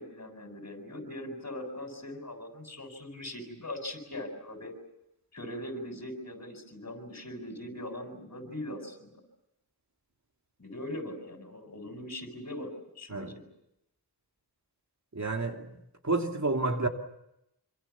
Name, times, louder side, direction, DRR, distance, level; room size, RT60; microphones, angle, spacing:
voice 1, 0.0-4.7 5.3-9.2 10.6-13.5, left 1 dB, 40° left, 7.5 m, -41 dB
voice 2, 15.1-15.7 16.0-16.9, right 3 dB, 45° right, 2.6 m, -29 dB
28.0 x 26.0 x 7.3 m
wide cardioid pair, 75°, 40 cm